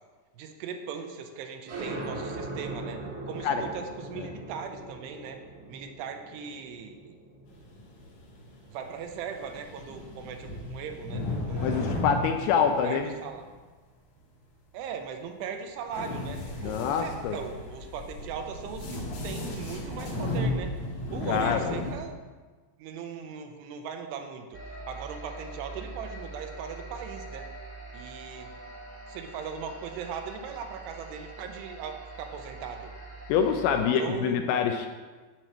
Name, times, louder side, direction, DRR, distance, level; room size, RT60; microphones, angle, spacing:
voice 1, 0.4-5.4 5.7-7.2 8.7-12.0 12.8-13.4 14.7-20.8 21.1-22.2 22.8-24.6 24.9-27.5 27.9-28.6 29.1-32.9 34.0-34.6, right 6 dB, 80° right, 5 dB, 2.8 m, -39 dB
sound 1, 1.7-8.9, right 2 dB, 60° right, 1.8 m, -40 dB
sound 2, 7.5-13.5 15.9-22.0, left 1 dB, 60° left, 2.1 m, -35 dB
voice 2, 11.6-13.1 16.6-17.4 21.3-21.8 33.3-34.9, left 7 dB, 80° left, 5 dB, 2.4 m, -26 dB
sound 3, 24.5-33.9, right 2 dB, 15° right, 1.3 m, -44 dB
9.3 x 4.5 x 6.1 m, 1.4 s
omnidirectional pair, 4.9 m